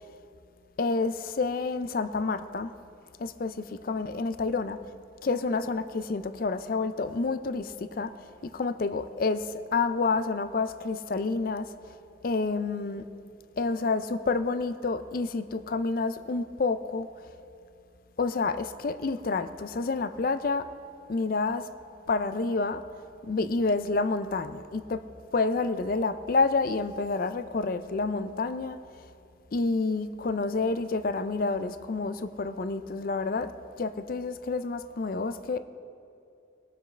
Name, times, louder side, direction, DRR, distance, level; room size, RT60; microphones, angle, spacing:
voice 1, 0.8-2.7 3.2-4.8 5.2-8.1 8.5-11.7 12.2-13.0 13.6-17.1 18.2-20.7 21.1-21.7 22.1-22.8 23.2-25.0 25.3-28.8 29.5-33.5 33.8-35.6, left 3 dB, 50° left, 0.4 m, -29 dB
20.5 x 7.4 x 3.3 m
head